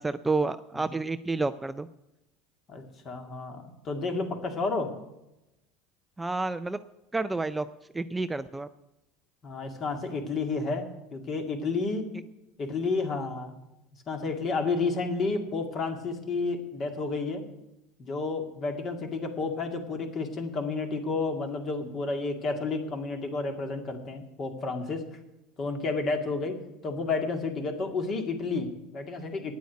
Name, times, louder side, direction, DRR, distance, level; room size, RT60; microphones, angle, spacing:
voice 1, 0.0-1.9 6.2-6.8 7.1-7.7 7.9-8.7, right 3 dB, 10° right, 12 dB, 0.4 m, -29 dB
voice 2, 2.7-4.9 9.4-12.1 12.6-13.5 14.1-17.4 18.0-25.0 25.6-29.5, left 3 dB, 35° left, 5 dB, 2.1 m, -31 dB
9.6 x 8.2 x 9.4 m, 0.93 s
supercardioid pair, 125°, 0 cm